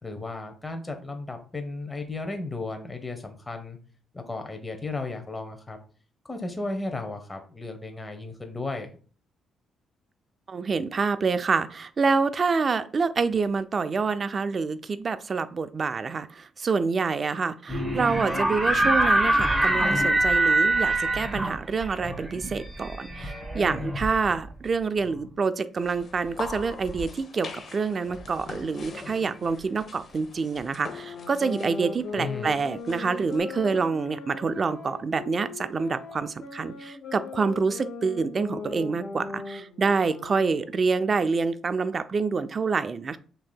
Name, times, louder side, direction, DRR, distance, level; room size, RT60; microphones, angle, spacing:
voice 1, 0.0-3.8 4.1-5.8 6.3-8.9 32.1-32.5, left 3 dB, 20° left, 5 dB, 0.8 m, -34 dB
voice 2, 10.5-43.2, right 4 dB, 40° right, 12 dB, 0.3 m, -27 dB
sound 1, 17.7-24.5, right 1 dB, 10° right, 0.9 m, -24 dB
sound 2, 25.7-33.4, left 4 dB, 55° left, 0.7 m, -43 dB
sound 3, 30.8-40.8, left 4 dB, 80° left, 1.2 m, -39 dB
5.9 x 2.7 x 2.2 m, 0.40 s
cardioid pair, 90°, 0 cm